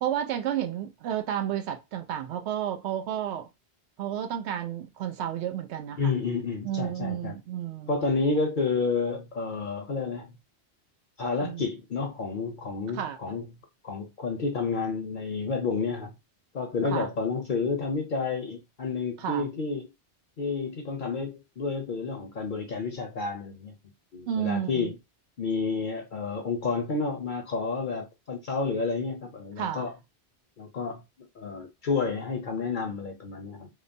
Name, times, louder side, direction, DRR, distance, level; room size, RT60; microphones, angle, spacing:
voice 1, 0.0-3.5 4.0-6.1 6.6-8.1 11.4-11.7 12.9-13.4 16.8-17.1 19.2-19.4 24.3-24.9 29.6-29.9, right 10 dB, 85° right, 0.9 m, -31 dB
voice 2, 6.0-7.3 7.9-10.3 11.2-13.5 13.8-16.1 16.5-19.9 20.4-23.8 24.1-25.0 25.4-29.9 30.6-31.0 31.4-33.7, left 4 dB, 55° left, 0.7 m, -30 dB
2.9 x 2.1 x 2.5 m
omnidirectional pair, 1.1 m